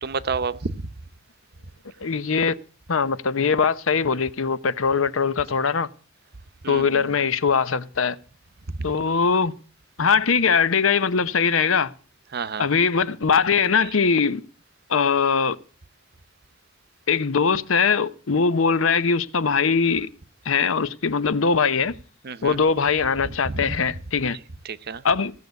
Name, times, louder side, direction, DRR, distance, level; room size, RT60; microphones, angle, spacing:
voice 1, 0.0-0.7 6.6-7.1 8.7-8.9 12.3-12.7 22.2-22.6 23.2-23.8 24.6-25.0, right 4 dB, 55° right, 0.8 m, -30 dB
voice 2, 2.0-2.6 2.9-5.9 6.7-8.2 8.8-9.5 10.0-11.9 12.6-14.4 14.9-15.6 17.1-20.1 20.5-21.9 22.4-24.4 25.0-25.3, left 5 dB, 85° left, 0.8 m, -21 dB
16.5 x 6.7 x 8.0 m
head